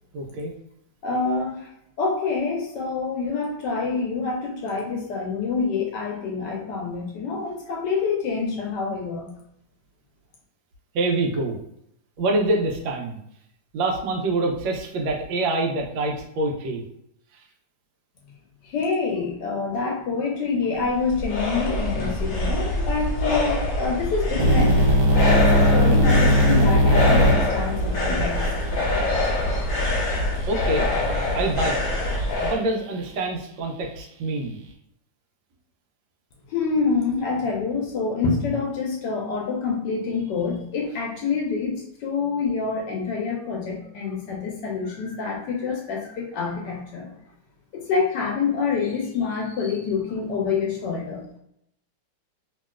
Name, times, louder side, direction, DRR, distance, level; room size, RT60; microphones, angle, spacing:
voice 1, 0.1-0.5 10.9-11.6 12.2-13.2 13.7-16.8 30.5-31.8 32.4-34.5, right 2 dB, 80° right, 2 dB, 1.4 m, -26 dB
voice 2, 1.0-1.7 2.0-9.3 18.6-24.8 25.2-28.8 36.5-47.1 47.7-51.2, left 4 dB, 75° left, -1 dB, 1.1 m, -26 dB
sound 1, 20.7-32.6, left 1 dB, 55° left, 1.1 m, -24 dB
sound 2, 24.4-30.3, equal, 65° right, 0.9 m, -20 dB
3.0 x 2.8 x 2.3 m, 0.74 s
omnidirectional pair, 2.1 m